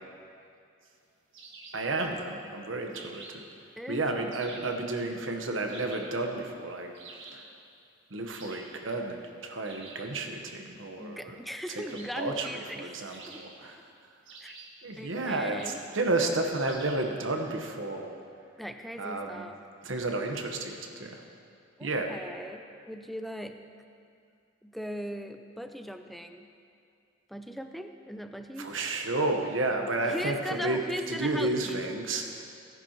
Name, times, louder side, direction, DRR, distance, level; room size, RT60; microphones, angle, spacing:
sound 1, 1.3-1.9 2.9-3.5 4.3-4.8 5.7-6.2 6.9-7.5 8.3-8.8 9.6-10.1 11.9-12.4 13.1-13.7 14.2-14.8 15.5-15.9 16.6-17.1, right 3 dB, 65° right, 1.5 m, -48 dB
voice 1, 1.7-3.4 3.9-6.9 7.3-7.4 8.1-11.4 11.7-11.8 12.1-13.8 14.8-18.2 19.0-19.5 19.8-21.2 21.8-22.2 28.6-30.8 31.1-32.4, right 2 dB, 85° right, 3 dB, 1.1 m, -31 dB
voice 2, 3.8-4.4 11.0-13.4 14.4-14.6 15.0-15.8 18.6-19.6 21.8-23.6 24.6-26.5 27.3-28.7 30.0-31.9, equal, ahead, 7 dB, 0.4 m, -39 dB
16.5 x 10.5 x 3.0 m, 2.4 s
head